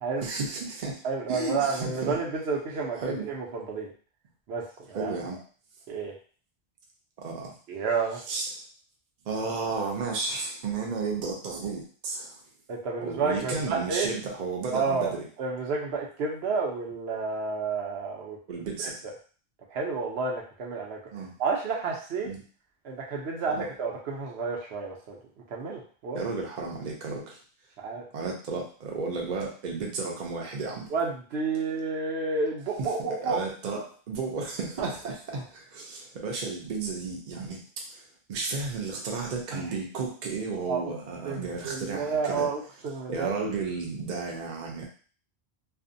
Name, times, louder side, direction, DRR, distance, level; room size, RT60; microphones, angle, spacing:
voice 1, 0.2-1.0 1.3-2.2 3.0-3.3 4.9-5.4 7.2-7.5 8.3-8.5 9.2-12.4 13.0-15.2 18.5-18.9 21.1-21.3 22.2-22.4 23.5-23.7 26.1-27.4 28.1-30.9 33.3-38.0 38.3-42.5 43.1-44.9, right 4 dB, 50° right, 0 dB, 0.6 m, -33 dB
voice 2, 1.0-3.0 3.2-3.9 4.5-5.1 5.9-6.1 7.7-8.2 12.7-14.1 14.7-18.4 18.8-19.1 19.7-21.0 21.4-22.3 22.8-25.2 25.5-26.2 27.8-28.0 30.9-33.4 34.8-34.9 35.3-35.4 39.5-39.6 40.6-40.9 41.2-43.3, right 4 dB, 75° right, -1 dB, 0.9 m, -30 dB
2.5 x 2.1 x 2.6 m, 0.40 s
omnidirectional pair, 1.1 m